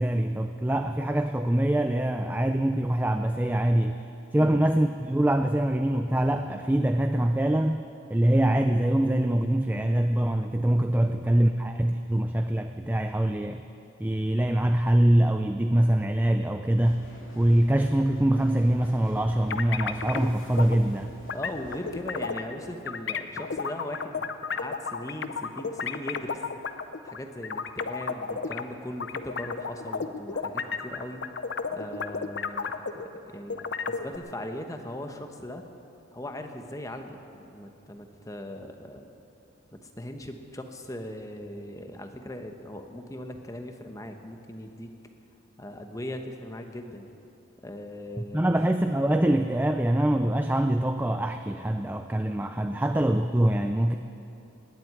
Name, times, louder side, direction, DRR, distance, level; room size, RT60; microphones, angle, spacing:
voice 1, 0.0-4.0 4.3-7.8 8.1-13.6 14.0-17.1 17.4-21.2 48.2-54.0, right 1 dB, 10° right, 7 dB, 0.3 m, -24 dB
sound 1, 16.7-22.8, equal, 85° left, 2.8 m, -48 dB
sound 2, 19.5-20.3 20.6-20.8 21.3-22.6 22.9-28.6 29.0-33.2 33.5-34.2, left 5 dB, 60° left, 0.6 m, -32 dB
voice 2, 21.3-26.4 27.0-31.2 31.7-35.6 36.1-39.1 39.8-44.9 45.6-47.1 47.6-48.5, left 1 dB, 15° left, 5 dB, 1.0 m, -39 dB
19.0 x 7.8 x 9.5 m, 2.9 s
head